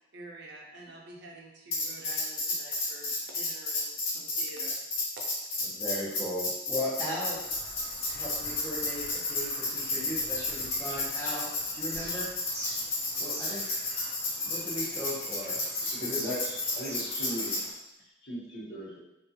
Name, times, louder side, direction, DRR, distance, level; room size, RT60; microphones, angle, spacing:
voice 1, 0.1-4.8, right 2 dB, 60° right, -1 dB, 0.5 m, -48 dB
Tambourine, 1.7-17.6, left 2 dB, 80° left, 0.7 m, -32 dB
voice 2, 5.7-7.4 8.1-12.4 13.2-13.6 14.4-15.7 16.0-16.2, left 1 dB, 15° left, -7 dB, 0.7 m, -37 dB
Bird vocalization bird call bird song, 7.2-17.7, right 1 dB, 15° right, 1.2 m, -46 dB
voice 3, 15.9-17.8 18.2-19.0, equal, 60° left, -8 dB, 1.0 m, -38 dB
2.4 x 2.3 x 2.8 m, 0.90 s
head